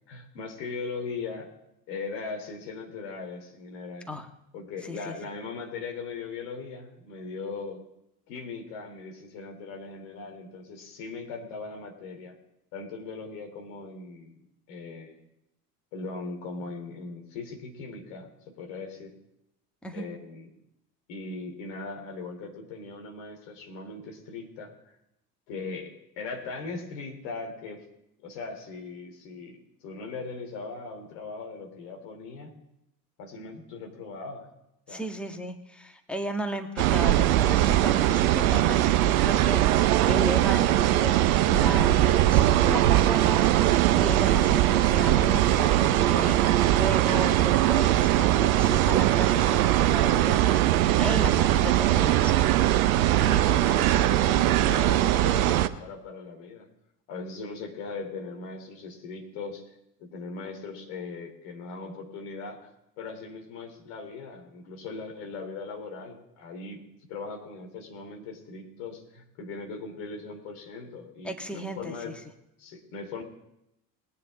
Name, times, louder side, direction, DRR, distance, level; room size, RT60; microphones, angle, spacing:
voice 1, 0.1-1.5 1.9-4.1 4.5-7.8 8.3-12.4 12.7-14.3 14.7-15.2 15.9-19.1 19.9-20.5 21.1-24.7 25.5-27.8 28.2-29.6 29.8-32.5 33.2-34.5 34.9-35.1 53.2-56.7 57.1-59.7 60.0-62.7 63.0-66.8 67.1-72.2 72.6-73.2, left 4 dB, 55° left, 3 dB, 3.2 m, -39 dB
voice 2, 4.8-5.1 19.8-20.0 34.9-41.2 41.5-52.7 71.2-72.2, equal, ahead, 4 dB, 1.7 m, -35 dB
sound 1, 36.8-55.7, right 13 dB, 60° right, 0.8 m, -21 dB
21.0 x 9.8 x 4.2 m, 0.86 s
figure-of-eight pair, 65°, 48 cm